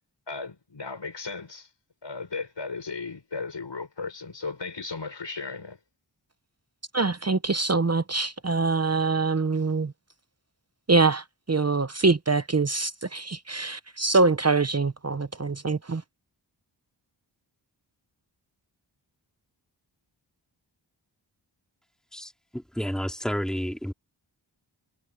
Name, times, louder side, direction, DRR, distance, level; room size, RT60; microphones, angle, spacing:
voice 1, 0.3-1.7 2.0-5.8, left 4 dB, 70° left, 6.8 m, -36 dB
voice 2, 6.9-9.9 10.9-16.0, right 3 dB, 35° right, 0.9 m, -24 dB
voice 3, 22.1-23.9, equal, ahead, 3.4 m, -31 dB
cardioid pair, 40°, 45 cm